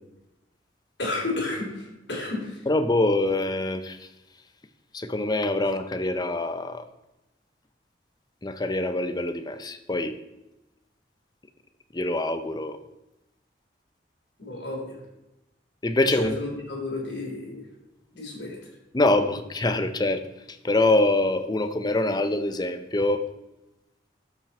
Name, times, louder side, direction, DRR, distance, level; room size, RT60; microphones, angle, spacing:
voice 1, 1.0-2.6 14.4-15.0 16.1-17.6 18.1-18.6, left 2 dB, 75° left, -2 dB, 3.4 m, -32 dB
voice 2, 2.7-4.1 4.9-6.8 8.4-10.2 11.9-12.8 15.8-16.3 18.9-20.2 20.5-23.2, left 2 dB, 25° left, 9 dB, 0.6 m, -24 dB
12.5 x 6.0 x 4.3 m, 0.97 s
head